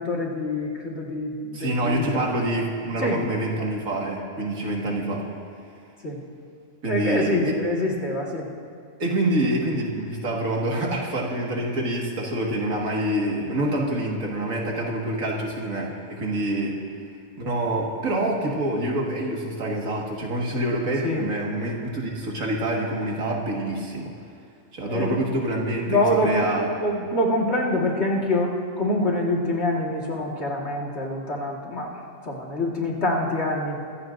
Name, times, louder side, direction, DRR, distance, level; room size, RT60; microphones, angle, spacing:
voice 1, 0.0-2.3 3.0-3.2 6.0-6.2 6.9-8.5 21.0-21.3 24.9-25.2 25.8-31.9 32.2-33.8, left 1 dB, 50° left, -2 dB, 2.1 m, -25 dB
voice 2, 1.5-5.2 6.8-7.6 9.0-16.8 17.4-24.1 24.7-26.7, right 1 dB, 80° right, -2 dB, 2.3 m, -26 dB
23.0 x 15.5 x 2.6 m, 2.2 s
omnidirectional pair, 1.4 m